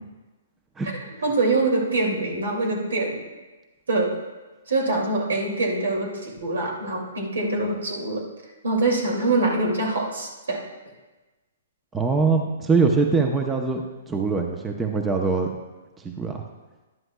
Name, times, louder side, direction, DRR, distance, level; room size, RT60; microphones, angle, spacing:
voice 1, 1.2-3.2 3.9-4.1 4.7-8.2 8.6-10.6, right 2 dB, 80° right, 0 dB, 2.5 m, -24 dB
voice 2, 11.9-15.5 16.0-16.4, right 4 dB, 15° right, 3 dB, 0.7 m, -23 dB
11.0 x 11.0 x 2.3 m, 1.2 s
hypercardioid pair, 130°, 0 cm